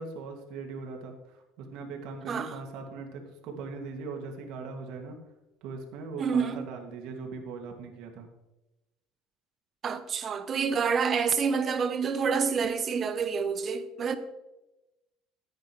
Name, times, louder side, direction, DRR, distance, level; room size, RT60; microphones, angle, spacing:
voice 1, 0.0-5.2 5.6-8.3, right 4 dB, 70° right, 2.3 m, -40 dB
voice 2, 2.3-2.6 6.2-6.7 9.8-14.2, right 6 dB, 35° right, 0.9 m, -28 dB
13.5 x 9.4 x 3.2 m
cardioid pair, 125°, 0 cm